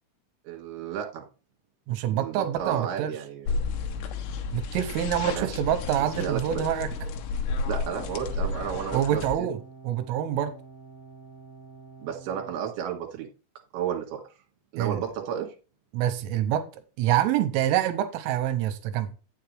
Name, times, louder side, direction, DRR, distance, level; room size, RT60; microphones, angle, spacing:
voice 1, 0.5-1.2 2.1-3.5 5.3-5.6 6.2-6.6 7.7-9.5 12.0-13.3 13.7-14.2 14.7-15.5, right 9 dB, 60° right, 3.5 m, -32 dB
voice 2, 1.9-3.1 4.5-6.9 8.9-10.5 14.8-15.0 15.9-16.7 17.0-19.1, right 11 dB, 85° right, 3.2 m, -26 dB
sound 1, 3.5-9.4, left 4 dB, 80° left, 3.5 m, -32 dB
sound 2, 7.5-12.5, right 4 dB, 20° left, 0.5 m, -48 dB
8.5 x 8.2 x 3.1 m
omnidirectional pair, 5.8 m